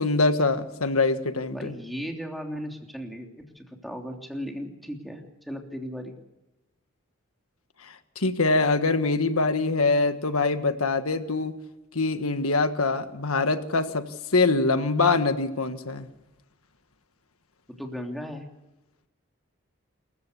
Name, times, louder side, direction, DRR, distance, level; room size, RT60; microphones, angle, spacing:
voice 1, 0.0-1.7 7.8-11.5 11.9-14.0 14.3-16.1, left 3 dB, 90° left, 9 dB, 1.5 m, -24 dB
voice 2, 1.5-6.1 17.8-18.5, equal, ahead, 2 dB, 3.2 m, -36 dB
27.0 x 15.0 x 6.9 m, 0.98 s
head